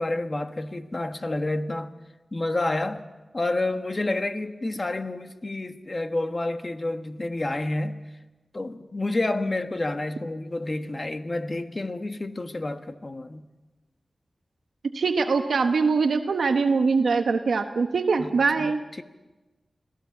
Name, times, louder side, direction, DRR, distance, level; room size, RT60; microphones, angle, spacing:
voice 1, 0.0-1.9 2.3-3.0 3.3-8.0 8.5-13.5 18.2-18.7, left 2 dB, 35° left, 1.4 m, -29 dB
voice 2, 14.9-18.8, right 4 dB, 85° right, 1.1 m, -23 dB
26.5 x 17.0 x 7.3 m
wide cardioid pair, 80°, 0 cm